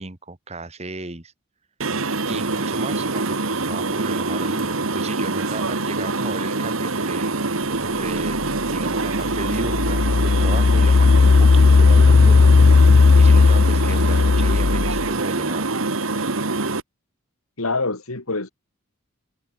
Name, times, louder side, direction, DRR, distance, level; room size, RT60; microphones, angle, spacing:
voice 1, 0.0-1.3 2.3-7.4 7.8-15.7, right 2 dB, 30° right, 1.6 m, -35 dB
sound 1, 1.8-16.8, right 3 dB, 70° right, 1.8 m, -25 dB
Engine, 8.4-8.5 9.1-15.1, left 4 dB, 45° left, 0.4 m, -15 dB
voice 2, 17.6-18.5, left 3 dB, 80° left, 2.9 m, -25 dB
head